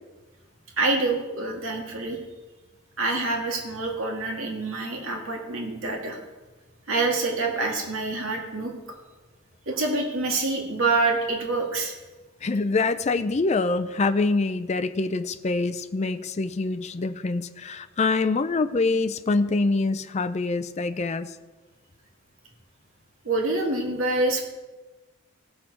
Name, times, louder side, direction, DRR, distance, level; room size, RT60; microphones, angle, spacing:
voice 1, 0.8-2.2 3.0-6.2 6.9-8.7 9.7-12.0 23.2-24.4, right 3 dB, 80° right, 1 dB, 2.0 m, -26 dB
voice 2, 12.4-21.4, left 3 dB, 35° left, 10 dB, 0.4 m, -25 dB
17.5 x 6.4 x 4.5 m, 1.2 s
head